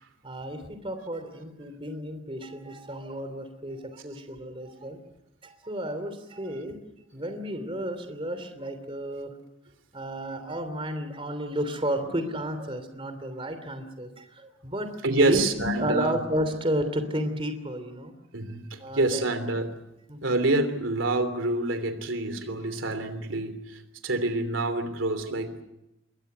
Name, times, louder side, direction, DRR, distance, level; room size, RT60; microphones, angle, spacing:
voice 1, 0.2-5.0 5.4-6.8 7.1-9.3 9.9-14.9 15.2-18.1 18.8-19.2 20.1-20.4, equal, 30° right, 8 dB, 3.0 m, -32 dB
voice 2, 15.0-16.2 18.3-19.8 20.2-25.6, right 2 dB, 85° right, 10 dB, 3.1 m, -27 dB
27.0 x 22.5 x 6.9 m, 0.90 s
head